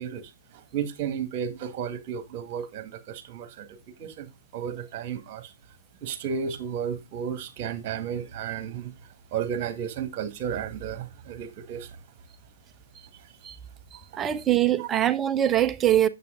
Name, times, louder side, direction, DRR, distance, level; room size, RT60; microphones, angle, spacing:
voice 1, 0.0-5.5 6.0-8.9 9.3-11.9 13.1-13.6 13.9-14.0 14.8-14.9, right 8 dB, 35° right, 1.7 m, -33 dB
voice 2, 14.2-16.1, right 12 dB, 15° right, 0.7 m, -22 dB
9.4 x 7.2 x 3.8 m
figure-of-eight pair, 125°, 0 cm